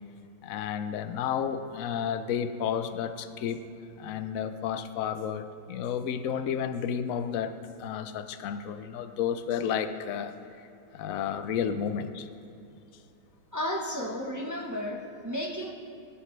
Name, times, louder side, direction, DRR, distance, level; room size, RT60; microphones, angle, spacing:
voice 1, 0.4-3.6 4.0-10.3 10.9-12.3, left 8 dB, 60° left, 9 dB, 1.0 m, -31 dB
voice 2, 13.5-15.7, left 1 dB, 15° right, -1 dB, 0.9 m, -33 dB
21.0 x 11.5 x 3.3 m, 2.7 s
omnidirectional pair, 1.8 m